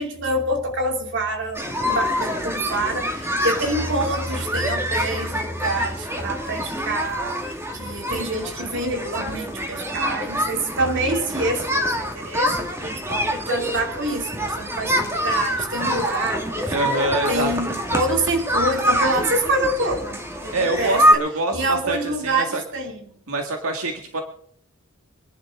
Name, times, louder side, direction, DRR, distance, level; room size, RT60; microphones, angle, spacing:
voice 1, 0.0-7.4 7.7-16.7 17.3-21.2 21.5-23.0, right 1 dB, 60° right, 3 dB, 2.8 m, -26 dB
sound 1, 1.5-21.1, equal, 10° right, 2.0 m, -25 dB
voice 2, 16.7-17.5 20.5-22.6 23.3-24.2, right 2 dB, 80° right, 3 dB, 1.8 m, -25 dB
24.5 x 11.0 x 3.7 m, 0.63 s
head